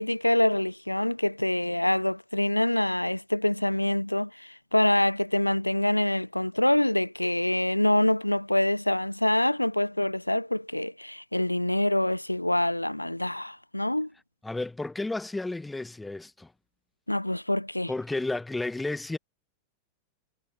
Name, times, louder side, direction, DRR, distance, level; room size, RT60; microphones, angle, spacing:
voice 1, 0.0-14.1 17.1-17.9, left 1 dB, 85° left, 0.5 m, -25 dB
voice 2, 14.4-16.5 17.9-19.2, left 2 dB, 5° left, 1.9 m, -32 dB
figure-of-eight pair, 90°, 0 cm